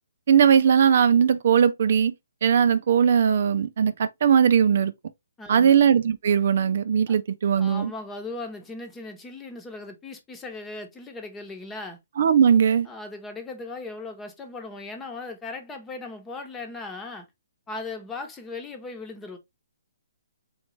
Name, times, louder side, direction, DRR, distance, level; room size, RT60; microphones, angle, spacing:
voice 1, 0.3-2.1 2.4-4.9 5.5-7.9 12.2-12.9, right 7 dB, 55° right, 0.4 m, -19 dB
voice 2, 5.4-5.8 7.1-7.2 7.6-12.0 12.9-17.3 17.7-19.4, left 3 dB, 10° left, 0.9 m, -38 dB
4.0 x 3.2 x 3.1 m
hypercardioid pair, 145°, 0 cm